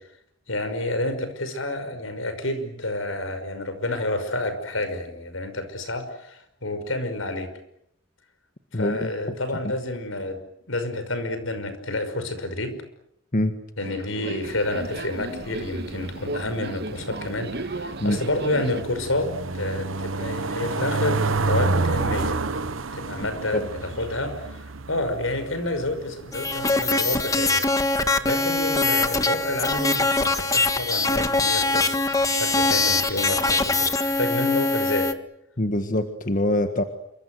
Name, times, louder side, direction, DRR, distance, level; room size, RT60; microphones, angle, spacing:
voice 1, 0.5-7.5 8.7-10.4 10.7-12.8 13.8-27.6 28.2-35.1, left 2 dB, 80° left, 10 dB, 5.7 m, -29 dB
voice 2, 8.7-9.4 13.3-13.6 18.0-18.2 23.5-23.7 35.6-36.8, left 1 dB, 40° left, 7 dB, 1.7 m, -24 dB
Subway metro underground, 13.8-18.8, right 2 dB, 55° right, 1.5 m, -35 dB
sound 1, 14.4-34.2, right 3 dB, 85° right, 1.2 m, -31 dB
sound 2, 26.3-35.1, left 3 dB, 15° left, 1.5 m, -23 dB
28.0 x 24.5 x 8.0 m, 0.76 s
head